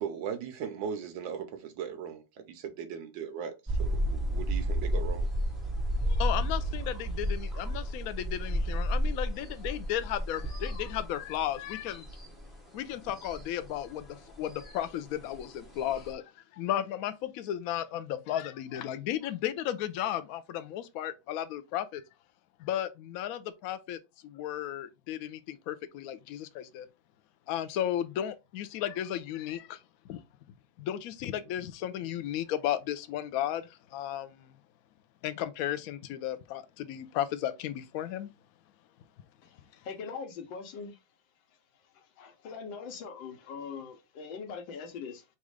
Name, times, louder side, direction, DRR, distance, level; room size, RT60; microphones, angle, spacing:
voice 1, 0.0-5.3, right 7 dB, 80° right, 1.5 m, -38 dB
sound 1, 3.7-16.1, equal, ahead, 0.9 m, -32 dB
voice 2, 6.0-12.1 12.7-22.0 22.6-26.9 27.5-29.8 30.1-30.2 30.8-34.5 35.2-38.3, left 11 dB, 90° left, 0.7 m, -34 dB
voice 3, 39.4-41.0 42.2-45.2, left 5 dB, 75° left, 1.6 m, -41 dB
4.1 x 2.5 x 4.7 m
omnidirectional pair, 2.1 m